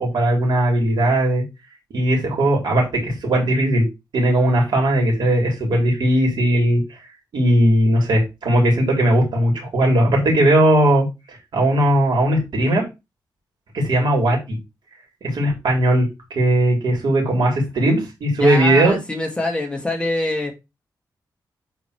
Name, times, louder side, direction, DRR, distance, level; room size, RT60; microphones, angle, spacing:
voice 1, 0.0-1.4 1.9-3.8 4.1-6.8 7.3-12.8 13.7-14.6 15.2-16.0 16.3-18.9, right 1 dB, 85° right, 3.8 m, -18 dB
voice 2, 18.4-20.5, left 1 dB, 15° left, 2.3 m, -24 dB
9.5 x 4.1 x 3.3 m
cardioid pair, 95°, 8 cm